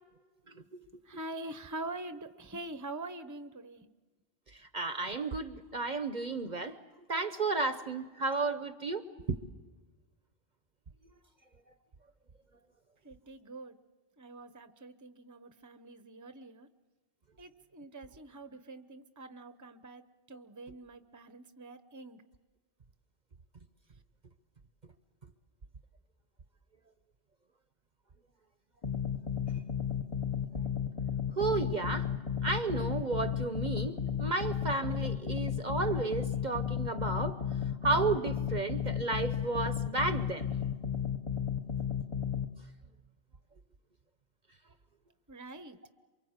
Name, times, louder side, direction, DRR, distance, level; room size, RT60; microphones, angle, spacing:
voice 1, 0.5-0.8 4.7-6.8 7.1-9.0 9.3-9.4 31.4-32.1 32.4-37.4 37.8-40.5, right 3 dB, 45° right, 10 dB, 1.0 m, -32 dB
voice 2, 1.0-3.9 13.0-13.8 14.2-16.7 17.4-22.2 45.3-45.8, right 2 dB, 15° right, 10 dB, 0.9 m, -45 dB
sound 1, 28.8-42.5, left 8 dB, 30° left, 1.0 m, -34 dB
28.0 x 24.0 x 8.1 m, 1.3 s
omnidirectional pair, 1.1 m